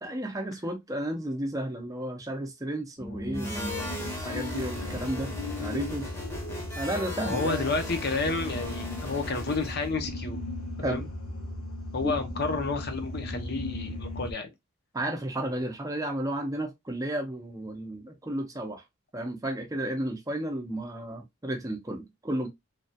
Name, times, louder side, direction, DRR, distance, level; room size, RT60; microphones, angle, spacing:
voice 1, 0.0-5.3 5.6-6.1 6.8-7.6 10.8-11.1 12.0-12.2 14.9-18.8 19.1-22.5, right 1 dB, 15° right, 0.6 m, -33 dB
sound 1, 3.0-14.3, left 2 dB, 80° left, 1.0 m, -36 dB
sound 2, 3.3-9.9, left 1 dB, 10° left, 0.8 m, -39 dB
voice 2, 7.2-10.4 10.8-11.0 11.9-14.5, left 3 dB, 50° left, 0.7 m, -31 dB
3.2 x 2.3 x 2.6 m
head